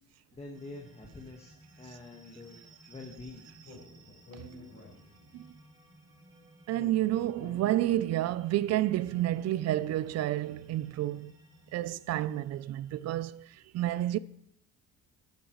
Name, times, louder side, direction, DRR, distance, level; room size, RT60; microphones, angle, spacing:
voice 1, 0.3-3.4, left 2 dB, 20° left, 1.4 m, -46 dB
sound 1, 0.5-13.3, right 2 dB, 10° right, 2.2 m, -58 dB
Speech, 3.6-5.5 6.7-8.5, left 1 dB, 45° left, 5.0 m, -50 dB
voice 2, 6.7-11.4 11.7-14.2, right 14 dB, 50° right, 0.4 m, -30 dB
12.0 x 10.5 x 3.1 m
cardioid pair, 120°, 33 cm